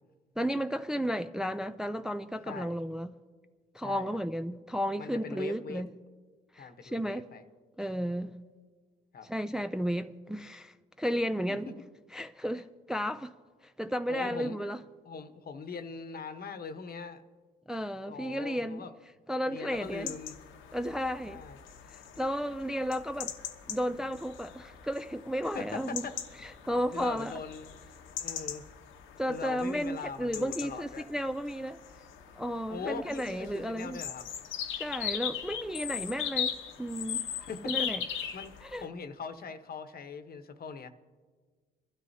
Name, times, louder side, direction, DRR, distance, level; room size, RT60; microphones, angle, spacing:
voice 1, 0.4-3.1 3.7-5.9 6.5-7.2 7.8-8.3 9.3-11.7 12.1-13.3 13.6-14.8 17.7-18.9 19.3-20.1 20.7-21.4 21.9-23.3 23.7-26.1 26.4-27.3 29.2-31.8 32.4-34.0 34.7-36.5 36.8-37.2 37.7-38.0 38.6-38.9, equal, 5° right, 0.4 m, -33 dB
voice 2, 2.5-2.8 3.8-4.2 5.0-5.8 6.6-7.4 9.1-9.3 11.5-11.6 14.1-14.6 15.0-17.2 18.0-18.9 19.5-20.4 21.3-21.6 25.5-26.1 26.9-27.8 28.2-28.7 29.3-31.1 32.7-34.3 37.4-40.9, left 5 dB, 50° left, 1.0 m, -41 dB
sound 1, 19.7-38.8, left 9 dB, 85° left, 1.0 m, -40 dB
23.5 x 12.5 x 2.8 m
cardioid pair, 90°, 20 cm